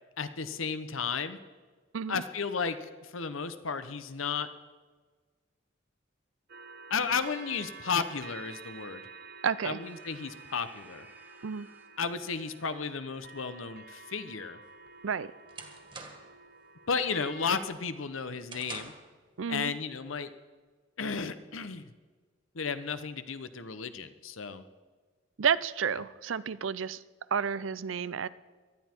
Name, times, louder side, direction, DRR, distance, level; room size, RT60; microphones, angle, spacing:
voice 1, 0.2-1.4 2.1-4.5 6.9-9.0 9.6-11.1 12.0-14.6 16.9-18.9 19.5-20.3 21.0-21.9 22.5-24.6, left 5 dB, 85° left, 11 dB, 1.0 m, -33 dB
sound 1, 6.5-17.6, right 4 dB, 50° right, 0.8 m, -49 dB
voice 2, 9.4-9.8 11.4-11.7 15.0-15.3 19.4-19.7 25.4-27.0 27.3-28.3, right 6 dB, 75° right, 17 dB, 0.5 m, -30 dB
sound 2, 9.8-12.1, right 1 dB, 10° right, 1.4 m, -58 dB
sound 3, 14.7-16.4 16.8-17.2 17.6-19.1, right 4 dB, 25° right, 1.9 m, -46 dB
19.0 x 13.0 x 4.5 m, 1.4 s
head